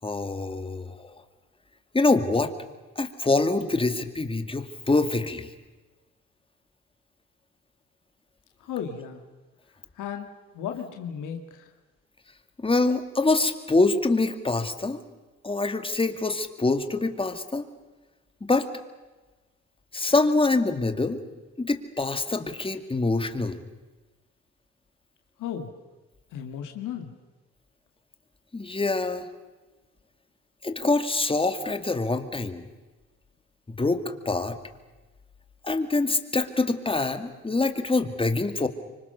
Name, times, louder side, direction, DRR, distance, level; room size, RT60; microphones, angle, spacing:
voice 1, 0.0-1.2 1.9-2.5 3.0-5.5 12.6-15.0 15.4-17.7 18.4-18.7 19.9-21.2 21.6-23.6 28.5-29.3 30.6-32.7 33.8-34.6 35.6-38.7, left 3 dB, 15° left, 8 dB, 2.2 m, -25 dB
voice 2, 8.6-9.2 10.0-10.3 10.5-11.7 25.4-25.7 26.3-27.1, left 8 dB, 85° left, 4 dB, 2.1 m, -34 dB
25.5 x 25.0 x 6.9 m, 1.2 s
cardioid pair, 90°, 30 cm